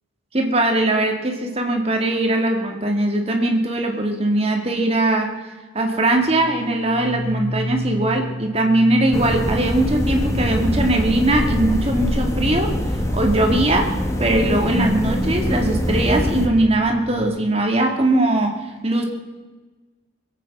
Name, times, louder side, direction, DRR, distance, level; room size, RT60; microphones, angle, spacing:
voice 1, 0.3-5.4 5.7-12.7 13.1-19.0, right 1 dB, 30° right, 3 dB, 2.0 m, -20 dB
sound 1, 6.2-14.3 15.0-17.3, equal, 30° left, 3.4 m, -33 dB
sound 2, 9.1-16.5, equal, 15° left, 1.3 m, -23 dB
21.0 x 8.6 x 7.1 m, 1.3 s
head